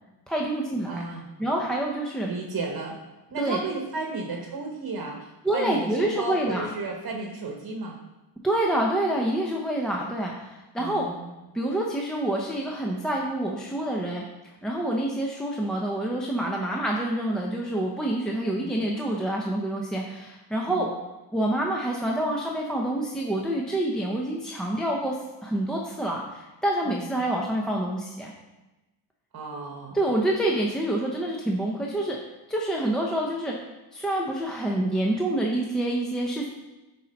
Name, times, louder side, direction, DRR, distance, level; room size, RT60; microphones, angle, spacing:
voice 1, 0.3-1.0 1.4-2.3 3.4-3.6 5.4-6.7 8.4-11.0 11.5-14.2 14.6-20.9 21.3-25.2 25.4-28.3 29.9-32.2 32.5-33.5 33.9-36.5, right 1 dB, ahead, -2 dB, 0.6 m, -27 dB
voice 2, 0.9-1.3 2.3-3.0 3.3-8.0 10.8-11.4 18.6-18.7 20.7-20.9 26.8-27.1 29.3-30.1, right 3 dB, 50° right, 1 dB, 1.1 m, -33 dB
9.9 x 4.1 x 5.2 m, 1.1 s
wide cardioid pair, 165°, 43 cm